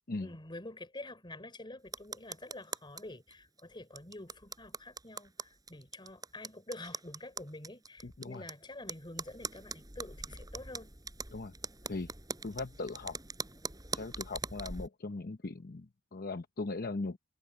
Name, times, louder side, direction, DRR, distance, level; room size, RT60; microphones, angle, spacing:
voice 1, 0.2-10.9, left 2 dB, 20° left, 3.4 m, -47 dB
sound 1, 1.9-3.0 3.3-3.4 3.6-3.7 4.0-8.5 8.9-14.9, right 4 dB, 15° right, 5.0 m, -42 dB
voice 2, 8.0-8.4 11.3-11.5 11.9-12.1 12.4-13.2 13.9-17.2, left 3 dB, 45° left, 0.8 m, -39 dB
head